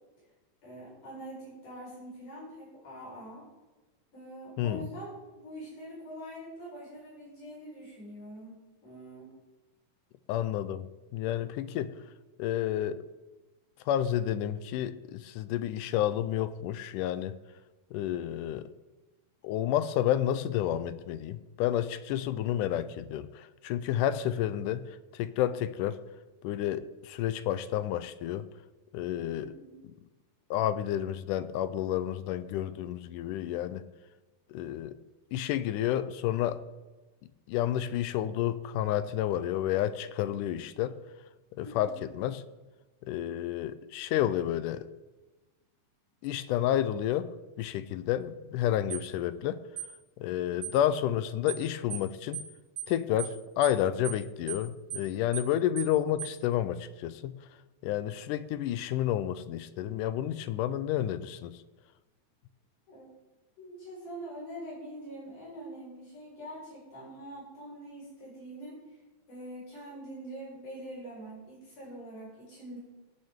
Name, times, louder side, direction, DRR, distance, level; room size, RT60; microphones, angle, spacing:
voice 1, 0.6-3.5 4.1-5.1 5.4-9.3 11.6-11.7 29.3-29.8 41.6-42.0 62.9-63.1 63.6-68.8 69.3-72.8, right 1 dB, 65° left, -6 dB, 6.3 m, -44 dB
voice 2, 10.3-12.0 12.4-13.0 13.9-17.4 17.9-18.7 19.4-26.0 26.4-28.5 28.9-29.5 30.5-33.9 34.5-35.0 35.3-36.6 37.5-41.0 41.6-42.4 43.0-44.9 46.2-49.6 50.2-52.4 52.9-57.3 57.8-61.6, left 11 dB, 80° left, 14 dB, 2.0 m, -30 dB
sound 1, 48.9-49.1 49.8-49.9 50.6-50.8 51.5-51.6 51.9-52.1 52.3-52.5 52.8-52.9 53.2-53.4 53.6-53.8 54.0-54.2 54.5-54.6 54.9-55.1 55.3-55.5 55.8-55.9 56.2-56.4, right 11 dB, 60° right, 3.0 m, -37 dB
18.5 x 9.1 x 3.7 m, 1.2 s
omnidirectional pair, 3.9 m